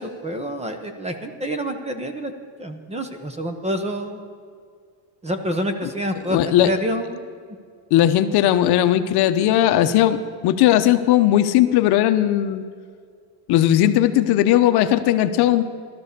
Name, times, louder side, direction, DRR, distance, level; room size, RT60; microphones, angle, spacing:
voice 1, 0.0-2.3 2.6-4.2 5.2-7.2, equal, 15° right, 7 dB, 1.0 m, -27 dB
voice 2, 6.3-6.7 7.9-12.7 13.5-15.6, left 12 dB, 55° left, 9 dB, 0.9 m, -17 dB
16.5 x 13.0 x 6.7 m, 2.1 s
cardioid pair, 160°, 45 cm